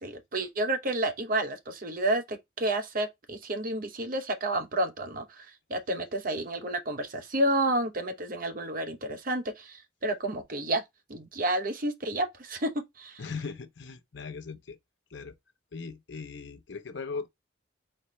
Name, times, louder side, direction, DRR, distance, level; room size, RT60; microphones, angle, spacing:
voice 1, 0.0-10.8 11.1-12.7 13.0-13.2, right 1 dB, 45° right, 0.8 m, -30 dB
voice 2, 13.2-14.8 15.1-15.4 15.7-17.3, left 4 dB, 60° left, 0.6 m, -39 dB
4.3 x 3.2 x 3.1 m
head